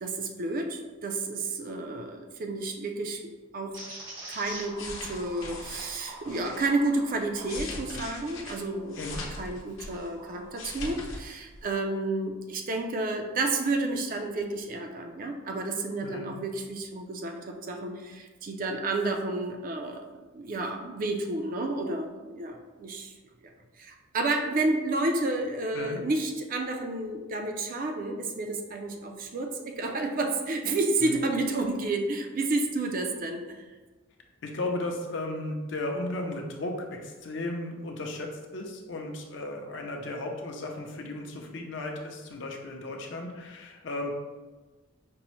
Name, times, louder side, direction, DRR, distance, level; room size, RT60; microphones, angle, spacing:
voice 1, 0.0-3.2 3.5-3.8 4.3-9.0 9.4-20.1 20.3-23.1 23.4-23.5 23.8-33.6, right 2 dB, 45° right, 4 dB, 0.4 m, -30 dB
sound 1, 3.7-9.3 9.8-11.0, right 1 dB, 85° right, 1.2 m, -45 dB
sound 2, 4.5-6.7 7.2-10.1 10.4-11.2 11.5-11.7, left 2 dB, 85° left, 0.8 m, -40 dB
voice 2, 34.4-44.1, left 2 dB, 60° left, 2 dB, 0.5 m, -35 dB
5.2 x 2.1 x 3.0 m, 1.3 s
head